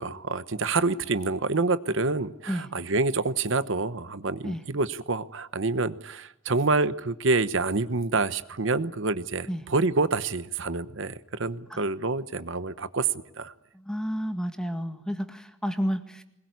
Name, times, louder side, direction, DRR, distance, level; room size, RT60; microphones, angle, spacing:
voice 1, 0.0-13.1 13.4-13.5, right 3 dB, 65° right, 13 dB, 1.0 m, -27 dB
voice 2, 13.7-16.2, equal, 5° left, 7 dB, 1.9 m, -31 dB
23.5 x 21.5 x 9.5 m, 0.79 s
head